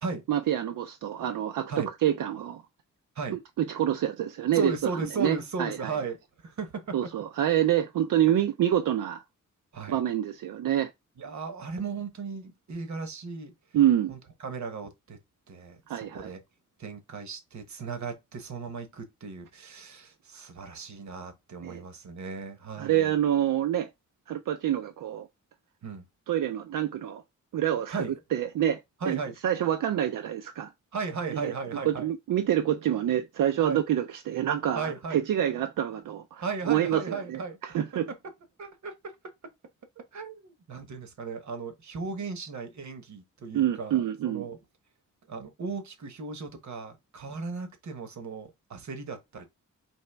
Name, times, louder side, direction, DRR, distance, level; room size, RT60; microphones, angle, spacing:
voice 1, 0.3-2.6 3.3-5.9 6.9-9.2 9.9-10.9 13.7-14.1 15.9-16.3 21.6-21.8 22.8-23.9 24.3-25.3 26.3-27.2 27.5-28.0 28.3-28.8 29.1-30.7 31.3-31.5 31.8-38.1 43.5-44.4, right 11 dB, 85° right, 0.5 m, -27 dB
voice 2, 4.5-7.1 9.7-10.0 11.2-13.5 14.1-15.2 15.5-16.4 16.8-23.1 25.8-26.0 27.9-28.1 29.0-29.3 30.9-32.1 33.6-33.8 34.7-35.2 36.4-37.6 38.6-39.1 40.0-44.6 45.3-49.5, right 4 dB, 60° right, 0.9 m, -36 dB
4.5 x 3.0 x 3.3 m
wide cardioid pair, 165°, 31 cm